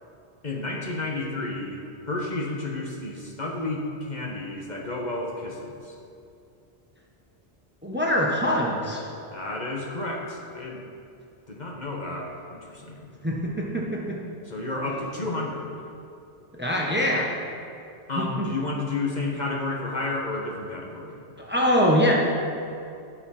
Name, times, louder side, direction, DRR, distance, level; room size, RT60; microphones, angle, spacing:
voice 1, 0.4-1.8 2.1-5.9 9.3-10.8 11.5-13.1 14.4-15.7 16.8-17.0 18.1-21.2, left 2 dB, 45° left, -1 dB, 1.3 m, -31 dB
voice 2, 7.8-9.0 13.2-14.2 16.6-17.3 18.2-18.5 21.4-22.1, equal, 10° right, -2 dB, 1.1 m, -23 dB
15.5 x 5.7 x 4.3 m, 2.5 s
omnidirectional pair, 1.1 m